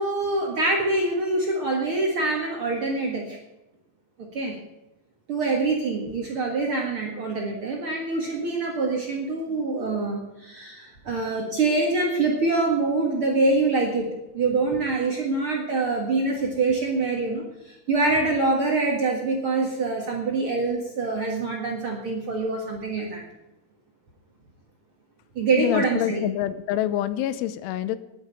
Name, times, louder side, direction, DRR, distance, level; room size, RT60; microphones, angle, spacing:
voice 1, 0.0-3.4 4.2-4.6 5.3-23.2 25.3-26.3, right 3 dB, 85° right, -1 dB, 1.1 m, -25 dB
voice 2, 25.6-28.0, left 12 dB, 85° left, 13 dB, 3.2 m, -26 dB
10.5 x 9.0 x 9.1 m, 0.96 s
omnidirectional pair, 5.4 m